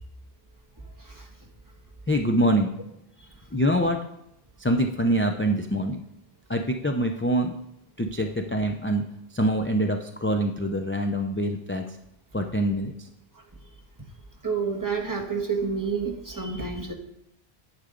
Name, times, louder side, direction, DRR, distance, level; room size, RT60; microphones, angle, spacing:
voice 1, 2.1-2.7 3.5-4.0 4.6-6.0 6.5-7.6 8.0-9.0 9.3-11.8 12.3-12.9, equal, 20° left, 4 dB, 0.4 m, -24 dB
voice 2, 14.4-16.9, right 5 dB, 20° right, 1 dB, 1.3 m, -29 dB
10.0 x 8.1 x 3.8 m, 0.80 s
omnidirectional pair, 1.0 m